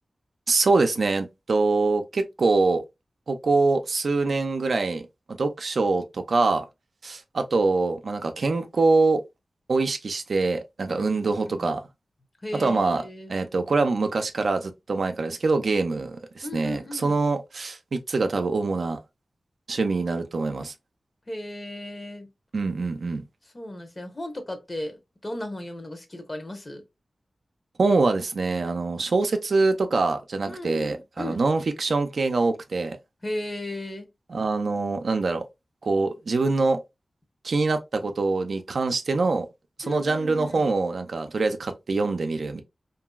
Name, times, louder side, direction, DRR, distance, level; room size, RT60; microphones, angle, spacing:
voice 1, 0.5-2.8 3.3-5.0 5.4-6.6 7.0-9.2 9.7-11.8 12.5-13.0 13.3-19.0 19.7-20.7 22.5-23.2 27.8-33.0 34.3-35.4 35.8-36.8 37.4-39.5 39.8-42.6, right 3 dB, 70° right, 0.5 m, -24 dB
voice 2, 10.9-11.2 11.5-11.7 12.4-13.3 16.4-17.2 21.3-22.3 23.5-26.8 30.5-31.4 33.2-34.1 39.8-40.7, left 1 dB, 35° left, 0.9 m, -36 dB
2.9 x 2.6 x 2.3 m
wide cardioid pair, 60°, 0 cm